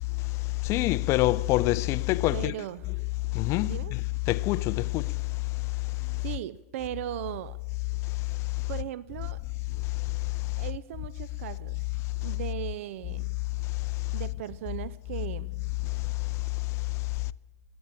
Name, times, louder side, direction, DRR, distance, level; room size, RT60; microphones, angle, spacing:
voice 1, 0.7-2.5 3.4-3.7 4.3-5.0, left 17 dB, 35° left, 0.4 m, -25 dB
voice 2, 2.3-3.0 3.6-4.0 6.2-7.6 8.7-9.4 10.6-13.3 14.1-15.5, right 13 dB, 55° right, 0.4 m, -38 dB
18.5 x 8.7 x 8.3 m
figure-of-eight pair, 100°, 9 cm